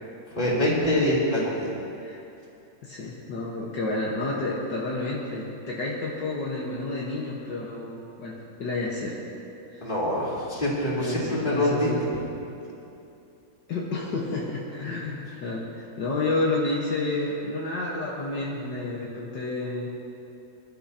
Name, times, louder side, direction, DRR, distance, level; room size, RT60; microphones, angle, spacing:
voice 1, 0.4-1.7 9.8-11.9, left 1 dB, 25° left, -7 dB, 3.6 m, -25 dB
voice 2, 2.8-9.2 9.7-9.9 10.9-12.1 13.7-19.9, left 2 dB, 65° left, -5 dB, 2.0 m, -30 dB
26.0 x 12.5 x 2.9 m, 2.7 s
omnidirectional pair, 2.1 m